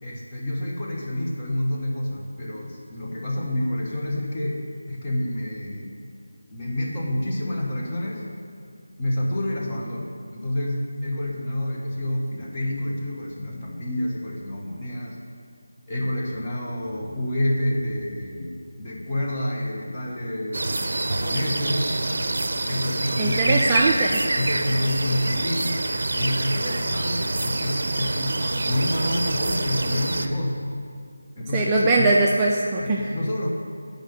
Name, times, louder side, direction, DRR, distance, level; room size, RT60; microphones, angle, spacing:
voice 1, 0.0-4.6 4.9-5.9 6.5-8.2 9.0-15.2 15.9-21.9 22.7-23.6 24.3-25.8 26.1-30.7 31.3-32.1 32.8-33.5, left 1 dB, 25° left, -3 dB, 1.2 m, -28 dB
sound 1, 20.5-30.3, right 2 dB, 55° right, 0.6 m, -26 dB
voice 2, 23.2-24.2 31.5-33.0, right 2 dB, 15° right, -3 dB, 0.5 m, -21 dB
9.5 x 5.2 x 6.6 m, 2.4 s
figure-of-eight pair, 165°, 0 cm